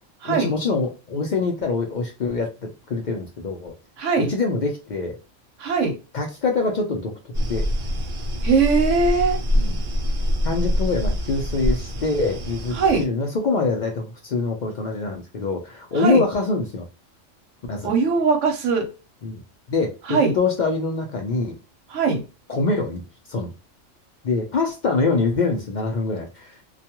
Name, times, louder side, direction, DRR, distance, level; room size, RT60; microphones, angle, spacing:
voice 1, 0.2-3.7 4.2-5.2 6.1-7.1 7.5-7.7 9.5-9.8 10.4-16.8 17.7-17.9 19.2-19.4 19.7-21.6 22.5-23.0 23.3-23.5 24.2-26.6, left 3 dB, 55° left, 2 dB, 0.5 m, -24 dB
voice 2, 4.0-4.3 5.6-6.0 8.4-9.4 12.8-13.0 16.0-16.2 17.8-18.9 20.1-20.3 21.9-22.2, right 4 dB, 80° right, 3 dB, 1.0 m, -20 dB
sound 1, 7.3-13.1, equal, 55° right, 0.6 m, -25 dB
2.3 x 2.2 x 2.8 m, 0.29 s
omnidirectional pair, 1.3 m